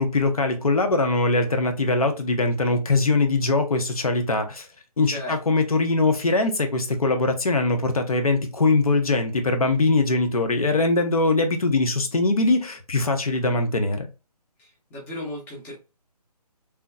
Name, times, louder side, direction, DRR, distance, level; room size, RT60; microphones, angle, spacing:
voice 1, 0.0-4.7 5.0-14.1, left 3 dB, 65° left, 0.8 m, -22 dB
voice 2, 5.0-5.4 14.6-15.7, left 1 dB, 10° left, 0.8 m, -35 dB
3.5 x 2.9 x 2.3 m
figure-of-eight pair, 145°, 20 cm